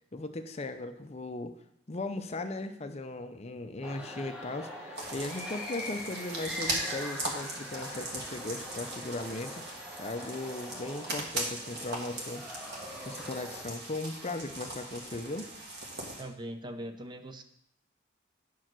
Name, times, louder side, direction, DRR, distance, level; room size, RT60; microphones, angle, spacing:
voice 1, 0.1-1.5 1.9-9.6 10.0-12.8 13.0-15.5, left 2 dB, 30° left, 8 dB, 0.5 m, -38 dB
sound 1, 3.8-13.6, left 1 dB, 5° right, 1.1 m, -43 dB
sound 2, 4.9-16.2, right 2 dB, 50° right, 1.7 m, -39 dB
voice 2, 16.2-17.4, right 1 dB, 20° right, 8 dB, 0.4 m, -41 dB
8.9 x 4.6 x 6.0 m, 0.72 s
head